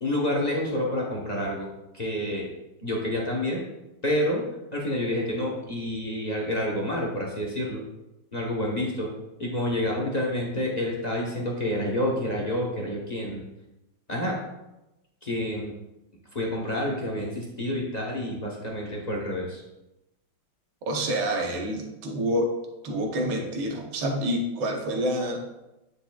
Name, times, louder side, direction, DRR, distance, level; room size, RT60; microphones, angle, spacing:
voice 1, 0.0-2.5 2.8-3.6 4.0-4.4 4.7-7.8 8.3-9.1 9.4-13.4 14.1-14.4 15.2-15.7 16.3-19.6, left 1 dB, 40° left, -3 dB, 0.6 m, -28 dB
voice 2, 20.9-22.5 22.8-25.4, equal, 75° right, 2 dB, 1.7 m, -27 dB
9.6 x 4.9 x 2.3 m, 0.95 s
omnidirectional pair, 2.2 m